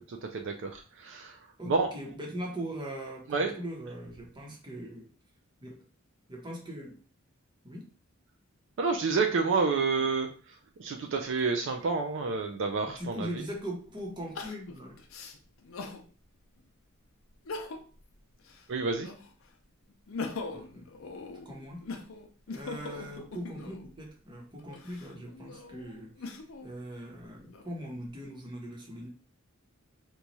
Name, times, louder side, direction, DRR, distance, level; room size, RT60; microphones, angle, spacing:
voice 1, 0.0-1.4 1.7-1.9 3.3-3.5 8.8-10.5 10.8-13.4 18.7-19.1, right 4 dB, 60° right, 5 dB, 0.4 m, -29 dB
voice 2, 1.6-5.1 5.6-5.8 6.3-7.0 7.6-7.9 12.8-15.0 20.5-20.9 21.4-21.9 22.5-29.1, equal, 20° right, -1 dB, 0.9 m, -40 dB
Crying sobbing, 14.3-16.0 16.6-16.7 17.3-18.0 18.4-19.4 19.9-23.9 24.6-26.7 27.2-28.1, left 3 dB, 70° left, 0.6 m, -41 dB
3.0 x 2.3 x 4.0 m, 0.39 s
head